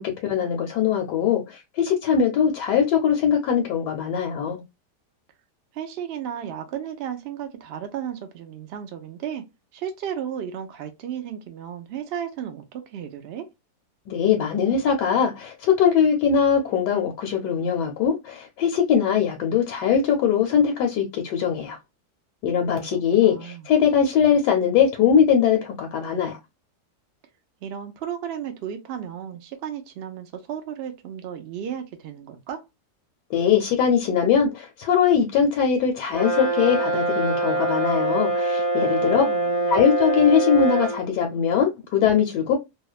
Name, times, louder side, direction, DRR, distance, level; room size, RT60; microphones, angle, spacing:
voice 1, 0.0-4.6 14.1-21.8 22.4-26.4 33.3-39.2 39.7-42.6, left 7 dB, 80° left, 1.2 m, -21 dB
voice 2, 5.7-9.4 9.7-13.5 22.9-23.7 27.6-32.6 39.0-39.8, right 9 dB, 80° right, 0.5 m, -34 dB
Brass instrument, 36.1-41.0, right 2 dB, 25° left, 0.5 m, -24 dB
2.8 x 2.1 x 2.3 m
omnidirectional pair, 1.8 m